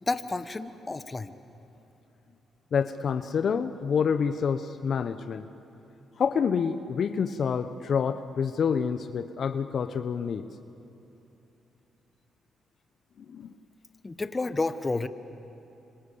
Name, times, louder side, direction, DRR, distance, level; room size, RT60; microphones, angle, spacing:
voice 1, 0.0-1.3 14.0-15.1, left 3 dB, 30° left, 11 dB, 1.4 m, -30 dB
voice 2, 2.7-5.5 6.2-10.5 13.3-13.5, left 6 dB, 60° left, 10 dB, 1.0 m, -27 dB
26.5 x 26.0 x 8.6 m, 2.9 s
supercardioid pair, 60°, 0 cm